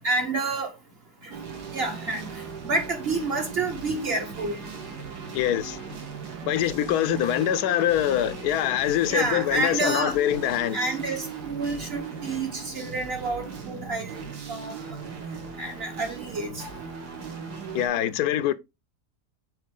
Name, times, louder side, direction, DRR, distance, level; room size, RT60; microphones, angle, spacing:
voice 1, 0.0-0.7 1.7-2.3 2.6-4.6 9.1-10.2 10.7-14.2 14.5-14.7 15.6-16.6, right 3 dB, 45° right, 1.2 m, -28 dB
sound 1, 1.3-17.9, right 5 dB, 80° right, 1.8 m, -38 dB
voice 2, 5.3-5.9 6.5-10.9 17.7-18.5, left 11 dB, 80° left, 1.1 m, -24 dB
5.6 x 4.5 x 3.7 m
omnidirectional pair, 1.7 m